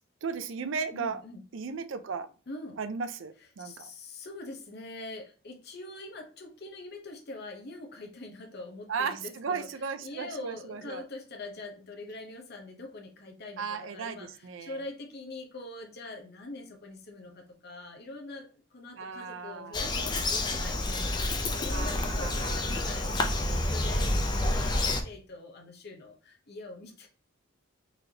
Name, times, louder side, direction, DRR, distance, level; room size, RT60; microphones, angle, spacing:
voice 1, 0.2-1.2 1.5-2.3 2.8-3.9 8.9-11.0 13.6-14.8 19.0-19.8 21.7-22.6, right 5 dB, 65° right, 10 dB, 0.5 m, -35 dB
voice 2, 0.9-1.4 2.5-2.8 3.6-9.7 10.0-27.1, left 2 dB, 50° left, 2 dB, 0.8 m, -44 dB
Bird vocalization bird call bird song, 19.7-25.0, left 2 dB, 20° left, 0.4 m, -29 dB
4.0 x 3.3 x 2.8 m, 0.37 s
head